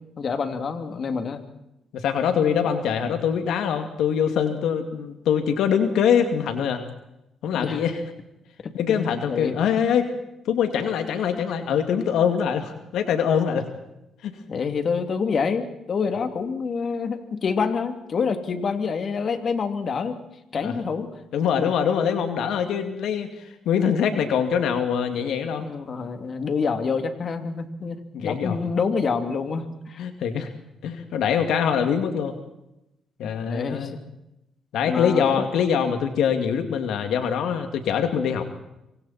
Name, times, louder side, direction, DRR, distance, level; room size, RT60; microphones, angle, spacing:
voice 1, 0.2-1.4 7.5-7.8 8.6-9.5 14.5-20.2 20.5-21.1 25.2-30.0 33.5-33.9 34.8-35.2, left 5 dB, 50° left, 7 dB, 2.8 m, -27 dB
voice 2, 1.9-6.8 7.4-8.0 8.7-10.1 10.5-13.7 14.2-14.4 20.6-20.7 21.3-25.7 28.1-28.6 30.0-30.5 30.8-32.3 33.2-34.0 34.7-38.4, left 7 dB, 80° left, 6 dB, 2.4 m, -23 dB
26.5 x 25.5 x 4.4 m, 0.87 s
cardioid pair, 90°, 0 cm